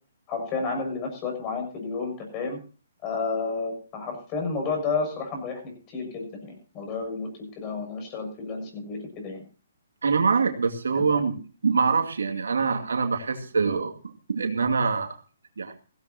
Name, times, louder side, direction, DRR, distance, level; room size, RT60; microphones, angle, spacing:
voice 1, 0.3-2.6 3.0-7.3 7.6-9.4 11.1-11.2, left 4 dB, 25° left, 3 dB, 6.9 m, -31 dB
voice 2, 10.0-15.2 15.6-15.8, right 5 dB, 90° right, 5 dB, 2.3 m, -25 dB
16.5 x 16.0 x 2.9 m, 0.35 s
hypercardioid pair, 150°, 0 cm